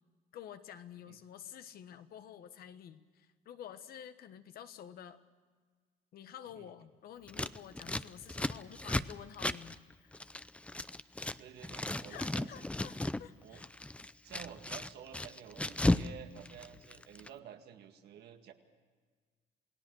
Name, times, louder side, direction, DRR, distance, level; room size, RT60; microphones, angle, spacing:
voice 1, 0.3-5.2 6.1-10.2 12.1-13.7, left 9 dB, 65° left, 10 dB, 1.4 m, -50 dB
Scissors, 7.3-11.4 11.6-13.2 13.5-16.1 16.4-17.3, left 2 dB, 5° left, 0.5 m, -35 dB
voice 2, 11.4-12.7 13.4-13.6 14.2-18.5, right 9 dB, 75° right, 5 dB, 2.0 m, -51 dB
28.0 x 18.0 x 6.4 m, 1.5 s
cardioid pair, 110°, 17 cm